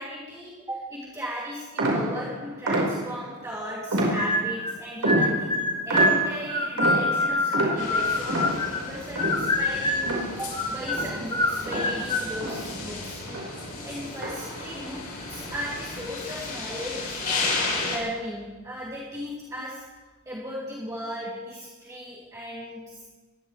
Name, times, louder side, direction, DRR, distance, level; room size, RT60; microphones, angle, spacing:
voice 1, 0.0-5.5 5.8-13.2 13.8-19.8 20.3-23.0, equal, 15° right, -6 dB, 2.7 m, -36 dB
sound 1, 1.8-3.4 3.9-4.6 5.0-10.6 10.9-13.0 13.3-13.7 14.2-14.6, right 1 dB, 85° right, 4.9 m, -29 dB
sound 2, 4.1-4.8 5.1-8.9 9.2-10.2 10.5-12.3, left 1 dB, 20° left, 1.6 m, -25 dB
sound 3, 7.8-18.0, left 3 dB, 40° left, 4.6 m, -34 dB
22.0 x 18.0 x 3.3 m, 1.3 s
head